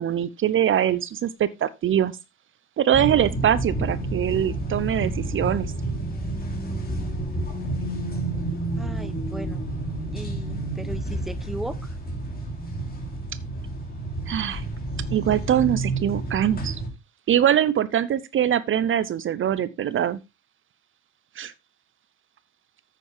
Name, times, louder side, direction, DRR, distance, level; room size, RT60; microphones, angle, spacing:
voice 1, 0.0-2.1 2.8-5.7 14.3-14.6 15.1-16.8 17.3-20.2 21.4-21.5, right 10 dB, 45° right, 0.7 m, -23 dB
sound 1, 2.9-16.9, right 2 dB, 30° left, 3.3 m, -30 dB
voice 2, 8.8-9.7 10.1-12.0, right 1 dB, ahead, 0.9 m, -37 dB
9.1 x 8.3 x 3.4 m
hypercardioid pair, 70°, 29 cm